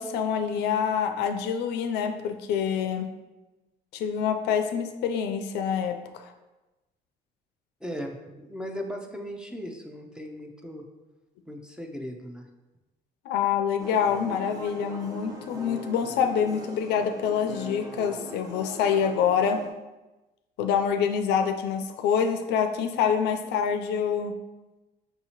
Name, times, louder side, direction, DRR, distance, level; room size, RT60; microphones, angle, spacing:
voice 1, 0.0-3.1 3.9-6.3 13.3-19.6 20.6-24.3, left 7 dB, 80° left, 6 dB, 0.4 m, -26 dB
voice 2, 7.8-10.8 11.5-12.5, equal, 5° right, 2 dB, 0.4 m, -37 dB
sound 1, 13.8-19.7, right 1 dB, 20° right, 0.8 m, -41 dB
5.4 x 2.8 x 2.9 m, 1.1 s
cardioid pair, 110°, 17 cm